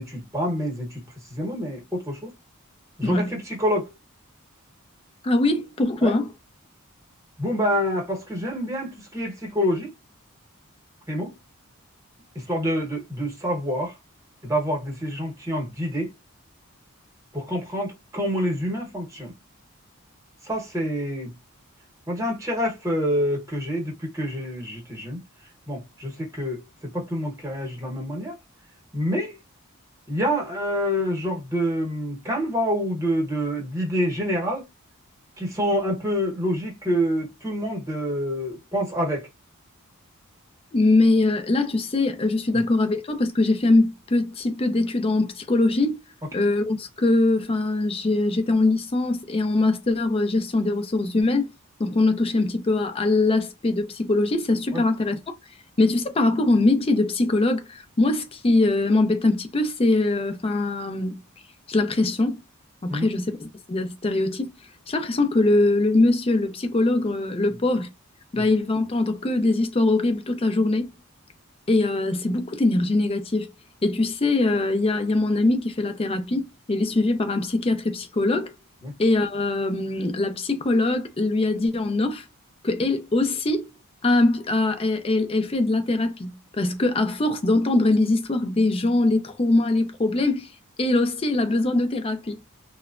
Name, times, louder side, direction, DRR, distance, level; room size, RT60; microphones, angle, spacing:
voice 1, 0.0-2.3 3.0-3.9 6.0-6.2 7.4-9.9 11.1-11.4 12.3-13.9 14.4-16.1 17.3-19.3 20.4-21.3 22.1-25.2 25.7-28.4 28.9-29.4 30.1-34.7 35.4-39.3 42.5-42.6 54.7-54.8 62.9-63.1 68.3-68.4 78.8-78.9, equal, 15° right, 0.9 m, -27 dB
voice 2, 5.2-6.3 40.7-46.0 46.3-51.5 51.8-55.4 55.8-61.2 61.7-62.4 62.8-64.5 64.9-67.9 68.3-70.9 71.7-73.5 73.8-78.5 79.0-82.3 82.6-83.7 84.0-90.5 90.8-92.4, left 2 dB, 25° left, 0.4 m, -22 dB
2.9 x 2.1 x 2.4 m
head